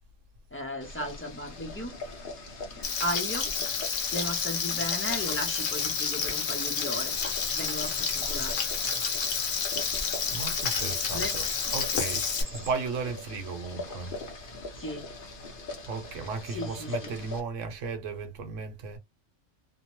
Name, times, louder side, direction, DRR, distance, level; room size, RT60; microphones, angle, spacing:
voice 1, 0.5-1.9 3.0-3.5 4.1-7.2 7.5-8.6 11.1-11.3 14.8-15.1 16.5-17.1, equal, 20° left, 0.3 m, -35 dB
Boiling, 0.8-17.4, left 2 dB, 45° left, 0.9 m, -42 dB
Frying (food), 2.8-12.4, left 6 dB, 70° left, 1.1 m, -30 dB
sound 1, 7.1-12.7, equal, 25° right, 0.6 m, -43 dB
voice 2, 10.3-14.2 15.9-19.0, right 4 dB, 70° right, 1.1 m, -35 dB
2.8 x 2.0 x 2.9 m
omnidirectional pair, 1.4 m